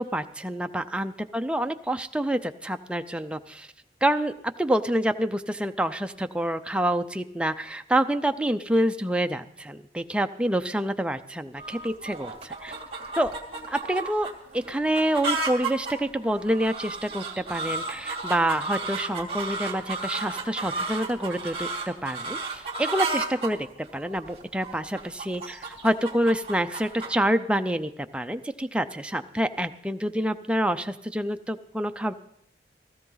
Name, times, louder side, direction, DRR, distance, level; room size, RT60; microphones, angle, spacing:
voice 1, 0.0-3.7 4.0-12.7 13.2-13.3 13.7-14.3 14.5-23.7 23.9-32.1, right 1 dB, 5° right, 7 dB, 0.5 m, -27 dB
sound 1, 11.6-27.2, right 3 dB, 35° right, 2.2 m, -33 dB
16.0 x 15.0 x 3.9 m, 0.72 s
head